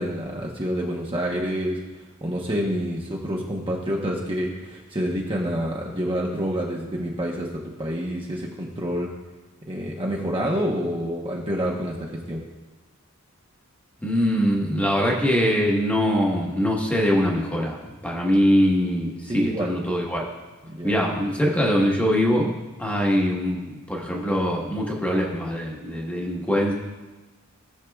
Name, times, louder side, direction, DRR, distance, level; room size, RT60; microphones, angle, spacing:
voice 1, 0.0-1.8 2.2-9.1 9.7-12.4 19.3-19.7 20.7-21.0, equal, 25° right, -2 dB, 0.9 m, -28 dB
voice 2, 14.0-20.2 20.8-22.5 22.8-26.7, equal, 5° left, -2 dB, 1.3 m, -22 dB
17.5 x 6.5 x 2.4 m, 1.2 s
head